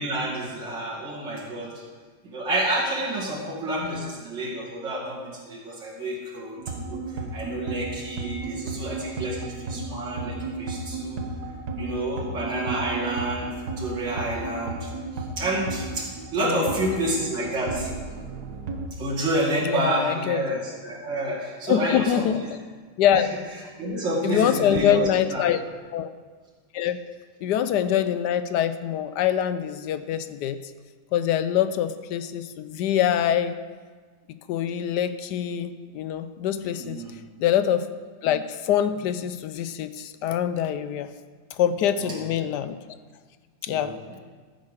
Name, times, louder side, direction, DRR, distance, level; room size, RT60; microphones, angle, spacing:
voice 1, 0.0-1.7 2.2-7.0 7.3-11.2 11.8-14.9 15.4-17.9 19.0-22.3 23.1-23.3 23.8-25.4 36.7-37.1 42.0-42.2 43.7-44.2, right 1 dB, 80° right, -6 dB, 3.0 m, -29 dB
sound 1, 6.6-18.9, right 3 dB, 60° right, 1.6 m, -34 dB
voice 2, 19.6-20.4 21.7-22.4 23.0-23.3 24.2-25.6 25.9-26.1 26.7-27.0 27.4-30.6 31.1-33.6 34.5-37.0 37.4-37.9 38.2-41.1 41.6-42.8 43.6-44.0, left 10 dB, 75° left, 12 dB, 1.1 m, -24 dB
14.0 x 7.7 x 5.0 m, 1.5 s
omnidirectional pair, 2.0 m